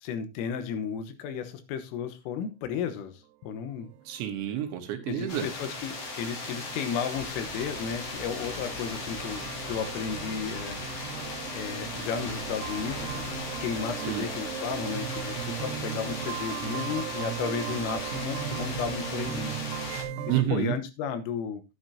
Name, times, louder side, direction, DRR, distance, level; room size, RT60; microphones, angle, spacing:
voice 1, 0.0-3.9 5.1-10.8 11.5-13.2 13.6-19.6 20.3-21.6, left 7 dB, 80° left, 10 dB, 3.7 m, -34 dB
sound 1, 3.5-20.4, right 11 dB, 90° right, 2.3 m, -38 dB
voice 2, 4.1-5.5 14.0-14.3 20.3-20.8, right 11 dB, 75° right, 7 dB, 3.0 m, -29 dB
sound 2, 5.3-20.0, left 3 dB, 45° left, 2.4 m, -37 dB
11.5 x 9.5 x 2.8 m, 0.23 s
omnidirectional pair, 5.9 m